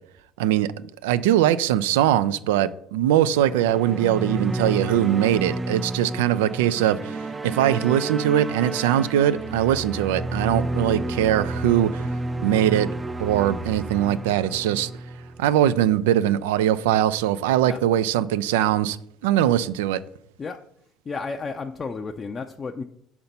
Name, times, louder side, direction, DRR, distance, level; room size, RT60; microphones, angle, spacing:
voice 1, 0.4-0.7 1.0-12.1 12.4-12.9 13.2-14.9 15.4-19.0 19.2-20.0, right 11 dB, 85° right, 0.3 m, -21 dB
sound 1, 3.3-15.8, right 2 dB, 20° right, 0.5 m, -31 dB
voice 2, 21.1-22.8, left 4 dB, 35° left, 0.5 m, -32 dB
5.7 x 4.3 x 5.3 m
hypercardioid pair, 70°, 0 cm